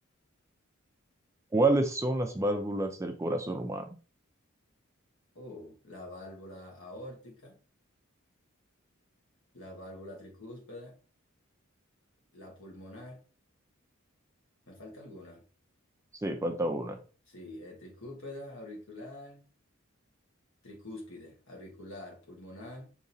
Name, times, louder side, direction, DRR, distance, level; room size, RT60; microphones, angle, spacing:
voice 1, 1.5-3.9 16.2-17.0, right 2 dB, 15° right, 0.4 m, -28 dB
voice 2, 5.3-7.6 9.5-11.0 12.3-13.2 14.7-15.4 17.3-19.5 20.6-22.9, left 1 dB, 65° left, 1.4 m, -46 dB
5.1 x 2.9 x 2.7 m
head